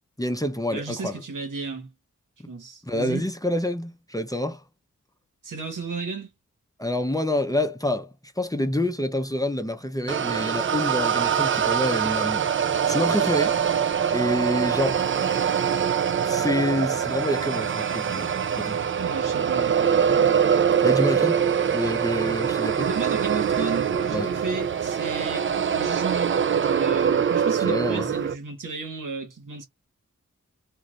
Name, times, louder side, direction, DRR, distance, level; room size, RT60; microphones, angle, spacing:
voice 1, 0.2-1.2 2.4-2.5 2.8-4.6 6.8-13.6 14.1-15.0 16.2-18.9 20.8-21.4 21.7-22.9 24.1-24.3 27.6-28.1, left 1 dB, 10° left, 0.7 m, -27 dB
voice 2, 0.7-1.9 2.5-3.3 5.4-6.3 19.0-19.8 22.8-29.6, right 4 dB, 85° right, 1.2 m, -33 dB
sound 1, 10.1-28.3, right 8 dB, 40° right, 0.4 m, -23 dB
2.6 x 2.4 x 3.1 m
cardioid pair, 40°, 31 cm